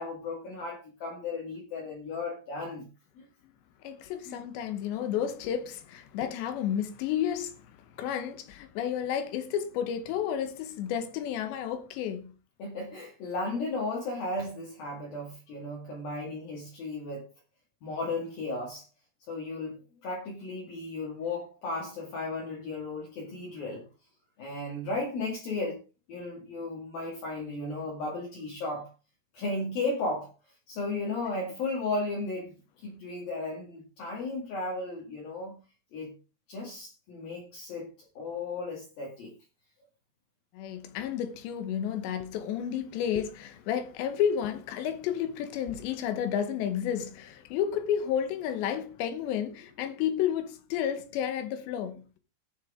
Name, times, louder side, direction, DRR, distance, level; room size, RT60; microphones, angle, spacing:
voice 1, 0.0-2.9 3.2-3.3 4.2-4.4 12.6-17.3 17.8-18.9 19.3-23.9 24.4-25.8 26.1-28.9 29.3-30.3 30.7-35.6 35.9-36.1 36.5-37.9 38.1-39.3, left 2 dB, 55° left, 3.4 m, -35 dB
voice 2, 3.8-12.3 40.5-52.1, left 9 dB, 75° left, 3.0 m, -31 dB
18.5 x 6.5 x 3.6 m
omnidirectional pair, 5.8 m